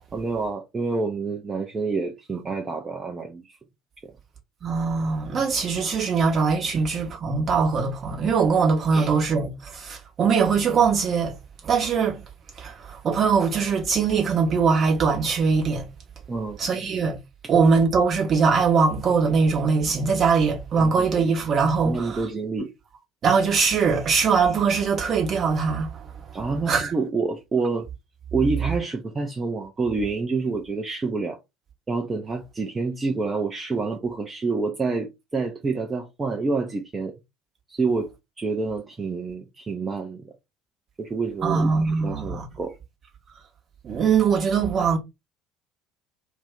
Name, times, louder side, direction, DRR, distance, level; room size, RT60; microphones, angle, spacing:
voice 1, 0.1-3.6 6.7-6.8 8.9-9.1 16.3-16.6 20.8-21.1 21.8-22.7 26.3-27.9 28.3-31.4 31.9-37.1 37.7-38.1 38.4-40.3 41.0-42.7, right 4 dB, 25° right, 0.5 m, -28 dB
voice 2, 4.6-11.4 11.6-12.2 12.6-15.9 16.6-17.2 17.5-22.2 23.2-26.4 26.7-26.9 41.4-42.5 43.8-45.0, right 5 dB, 40° right, 0.9 m, -22 dB
2.5 x 2.1 x 3.4 m
figure-of-eight pair, 60°, 0 cm